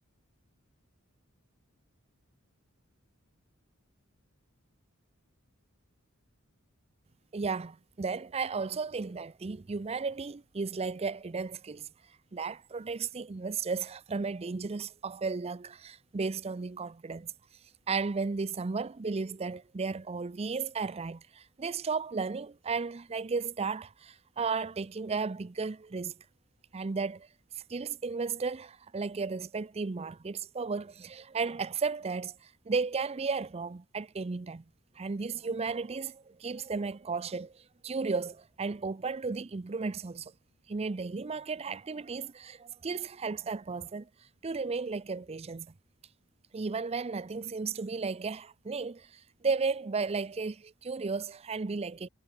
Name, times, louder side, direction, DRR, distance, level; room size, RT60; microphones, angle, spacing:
voice 1, 7.3-11.9 12.3-17.3 17.9-26.1 26.7-27.3 27.7-34.6 35.0-40.3 40.7-44.1 44.4-45.7 46.5-52.1, right 4 dB, 30° right, 0.5 m, -34 dB
head